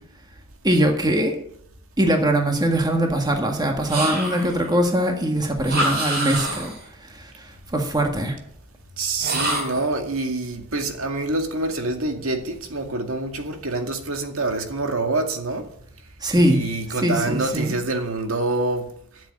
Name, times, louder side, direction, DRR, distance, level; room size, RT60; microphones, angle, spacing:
voice 1, 0.6-1.3 2.0-6.7 7.0-8.4 16.2-16.6 16.9-17.7, right 1 dB, 20° right, 1.7 m, -22 dB
sound 1, 3.9-4.7 5.6-6.9 9.2-9.9, right 1 dB, 55° right, 4.5 m, -26 dB
voice 2, 9.0-15.6 16.4-18.9, right 2 dB, 80° right, 2.2 m, -26 dB
12.5 x 7.5 x 8.8 m
head